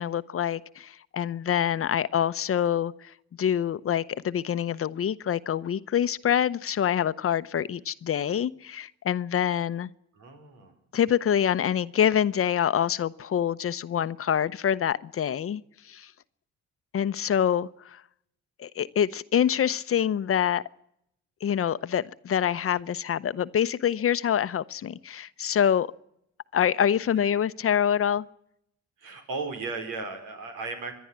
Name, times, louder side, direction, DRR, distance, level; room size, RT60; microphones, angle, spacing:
voice 1, 0.0-3.1 3.4-9.9 10.9-15.6 15.9-16.1 16.9-18.0 18.6-20.6 21.4-25.9 26.5-28.2, left 9 dB, 45° left, 0.8 m, -26 dB
voice 2, 10.1-10.7 27.1-27.3 29.0-30.9, right 3 dB, 90° right, 4.7 m, -36 dB
25.0 x 11.0 x 9.7 m
cardioid pair, 90°, 30 cm